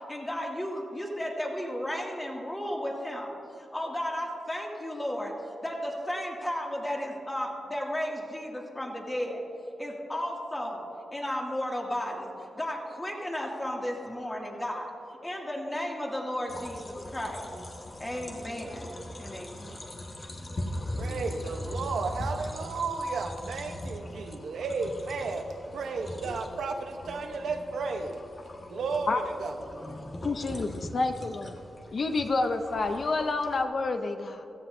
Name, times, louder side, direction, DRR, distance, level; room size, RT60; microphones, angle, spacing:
voice 1, 0.1-3.3 3.6-5.3 5.6-9.4 9.8-10.8 11.1-12.3 12.6-14.9 15.2-17.5 18.0-18.9 19.2-19.8, equal, 20° left, -2 dB, 2.4 m, -34 dB
sound 1, 16.5-33.6, left 1 dB, 40° left, 1.5 m, -40 dB
voice 2, 20.9-25.5 25.7-28.2 28.6-29.6, right 4 dB, 85° right, 4 dB, 1.0 m, -33 dB
voice 3, 30.2-31.6 31.9-34.4, left 3 dB, 55° left, 6 dB, 0.7 m, -29 dB
16.0 x 14.0 x 2.7 m, 2.9 s
cardioid pair, 85°, 0 cm